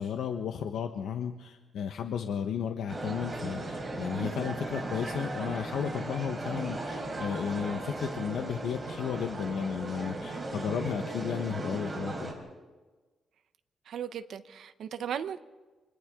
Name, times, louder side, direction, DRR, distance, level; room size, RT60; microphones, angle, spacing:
voice 1, 0.0-12.3, left 8 dB, 80° left, 5 dB, 1.2 m, -34 dB
sound 1, 2.9-12.3, right 2 dB, 20° right, 4.4 m, -37 dB
voice 2, 13.9-15.4, right 8 dB, 65° right, 10 dB, 1.0 m, -36 dB
29.5 x 26.0 x 3.8 m, 1.3 s
wide cardioid pair, 165°, 0 cm